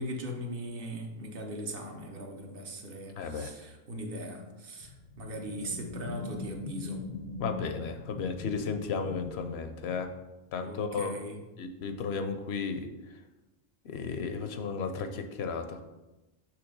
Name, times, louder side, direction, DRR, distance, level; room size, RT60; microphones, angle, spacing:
voice 1, 0.0-7.0 10.6-11.4, right 1 dB, 60° right, 2 dB, 1.0 m, -39 dB
voice 2, 3.2-3.5 7.4-10.1 10.5-11.1 11.6-12.9 13.8-15.8, left 5 dB, 75° left, 7 dB, 0.9 m, -34 dB
sound 1, 4.8-10.2, left 3 dB, 50° left, 0.5 m, -42 dB
6.0 x 3.3 x 5.2 m, 1.0 s
omnidirectional pair, 1.1 m